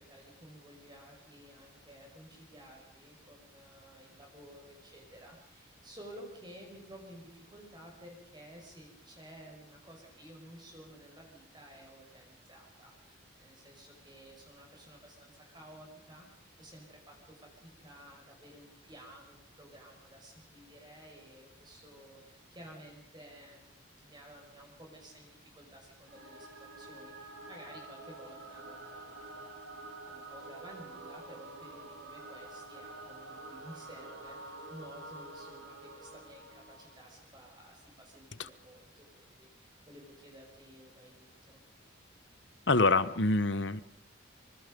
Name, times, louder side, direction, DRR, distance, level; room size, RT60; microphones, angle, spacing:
voice 1, 0.0-29.6 30.1-41.6, equal, 20° right, 0 dB, 5.9 m, -53 dB
Singing / Musical instrument, 26.1-37.3, right 2 dB, 85° right, 6.1 m, -48 dB
voice 2, 42.7-43.8, left 3 dB, 60° left, 15 dB, 1.2 m, -26 dB
27.0 x 25.5 x 5.4 m, 0.73 s
head